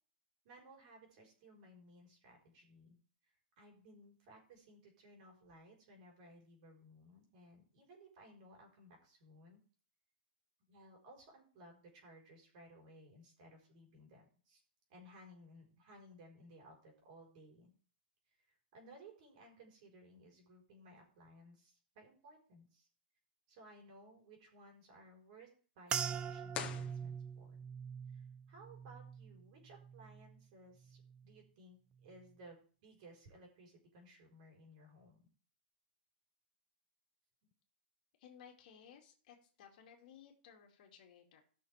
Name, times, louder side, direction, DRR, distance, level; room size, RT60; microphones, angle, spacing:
voice 1, 0.4-3.0 3.2-9.6 10.7-14.6 14.9-17.7 18.5-22.9 23.5-25.5 25.7-27.5 28.1-35.2 37.4-37.5, right 1 dB, 45° right, 1 dB, 4.4 m, -60 dB
sound 1, 25.9-30.4 30.8-31.4 32.0-32.2, right 7 dB, 15° right, 0.4 m, -44 dB
sound 2, 26.5-27.7, left 9 dB, 25° left, 1.1 m, -45 dB
voice 2, 38.2-41.4, left 8 dB, 50° left, 1 dB, 2.5 m, -59 dB
16.5 x 6.2 x 3.5 m, 0.42 s
hypercardioid pair, 155°, 6 cm